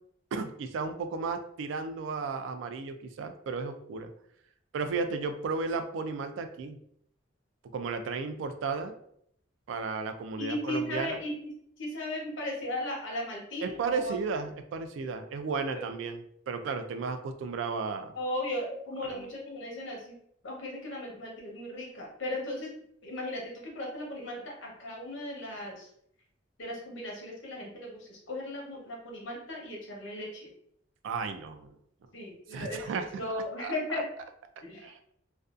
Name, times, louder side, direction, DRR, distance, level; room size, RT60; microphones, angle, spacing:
voice 1, 0.3-4.1 4.7-6.8 7.7-8.9 9.7-11.2 13.6-18.1 19.0-19.3 31.0-31.8 32.5-33.1 33.3-34.0 34.8-35.0, right 4 dB, 75° right, 8 dB, 0.3 m, -34 dB
voice 2, 10.4-11.5 11.8-14.1 18.2-20.2 20.4-22.7 23.0-25.9 26.6-30.5 32.1-32.8 33.2-34.1 34.6-34.9, left 1 dB, 75° left, -1 dB, 0.8 m, -36 dB
2.5 x 2.2 x 2.4 m, 0.70 s
head